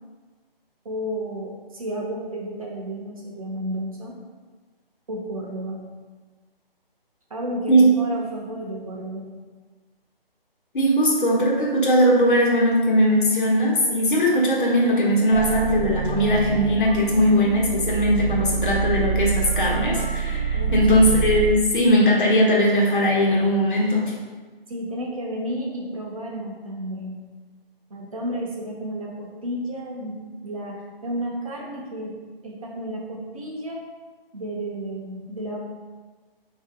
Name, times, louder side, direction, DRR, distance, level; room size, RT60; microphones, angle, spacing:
voice 1, 0.8-4.2 5.1-5.8 7.3-9.3 20.5-20.8 24.7-27.1 27.9-32.2 32.4-33.8 34.3-35.6, right 1 dB, 35° right, -1 dB, 0.6 m, -32 dB
voice 2, 10.7-24.1, equal, 55° left, -3 dB, 1.2 m, -19 dB
sound 1, 15.3-21.5, right 6 dB, 5° left, 0.5 m, -26 dB
4.5 x 2.7 x 3.7 m, 1.4 s
figure-of-eight pair, 155°, 30 cm